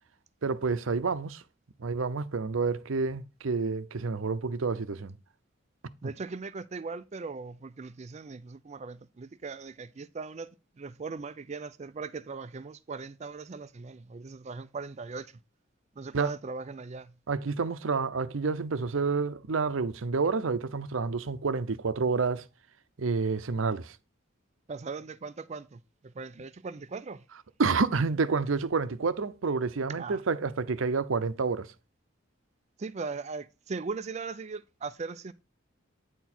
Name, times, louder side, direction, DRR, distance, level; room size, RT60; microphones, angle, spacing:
voice 1, 0.4-1.4 1.8-5.2 16.1-16.3 17.3-22.4 23.0-24.0 27.6-31.7, right 4 dB, 80° right, 0.6 m, -29 dB
voice 2, 6.0-10.5 10.8-15.3 16.0-17.1 24.7-27.2 30.0-30.2 32.8-35.3, right 4 dB, 35° right, 0.4 m, -39 dB
9.1 x 4.4 x 4.2 m
head